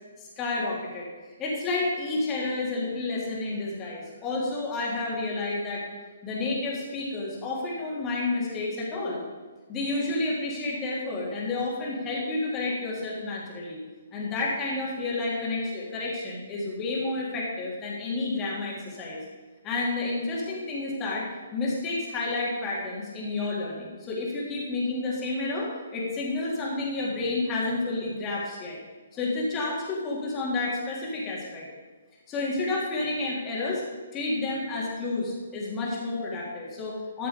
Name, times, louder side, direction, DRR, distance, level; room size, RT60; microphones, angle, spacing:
voice 1, 0.2-5.8 6.2-9.2 9.7-13.8 14.1-19.2 19.6-21.3 21.5-28.8 29.1-31.6 32.3-33.8 34.1-37.3, left 2 dB, 20° left, -4 dB, 3.2 m, -30 dB
13.5 x 6.7 x 5.2 m, 1.3 s
figure-of-eight pair, 130°, 0 cm